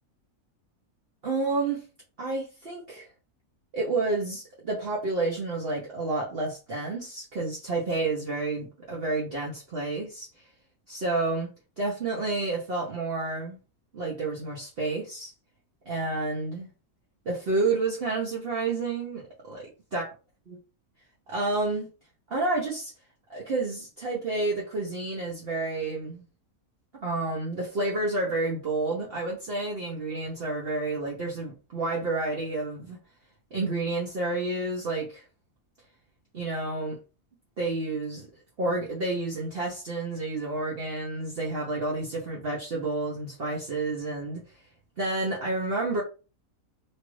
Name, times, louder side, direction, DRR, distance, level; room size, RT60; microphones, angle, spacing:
voice 1, 1.2-1.8 2.2-3.1 3.7-10.3 10.9-11.5 11.8-13.6 13.9-15.3 15.9-16.7 17.3-20.1 21.3-21.9 22.3-22.9 23.3-26.3 27.0-33.0 33.5-35.2 36.3-37.0 37.6-38.3 38.6-44.4 45.0-46.0, right 3 dB, 45° right, 0.9 m, -30 dB
3.1 x 2.4 x 3.1 m
omnidirectional pair, 1.6 m